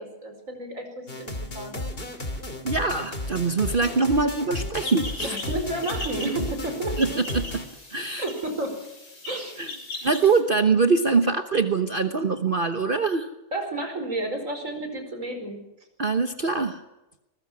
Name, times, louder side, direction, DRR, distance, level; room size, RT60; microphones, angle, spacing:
voice 1, 0.0-1.8 5.2-7.0 8.2-8.8 9.3-9.6 13.5-15.6, right 2 dB, 65° right, 6 dB, 5.3 m, -31 dB
sound 1, 1.1-7.7, left 1 dB, 40° left, 3.0 m, -34 dB
voice 2, 2.6-5.4 6.2-6.4 7.0-7.6 7.9-8.2 9.6-9.7 10.0-13.3 16.0-16.8, right 4 dB, 40° right, 7 dB, 1.2 m, -23 dB
sound 2, 4.8-10.4, left 2 dB, 80° left, 5.5 m, -39 dB
25.0 x 21.5 x 6.2 m, 0.99 s
omnidirectional pair, 1.5 m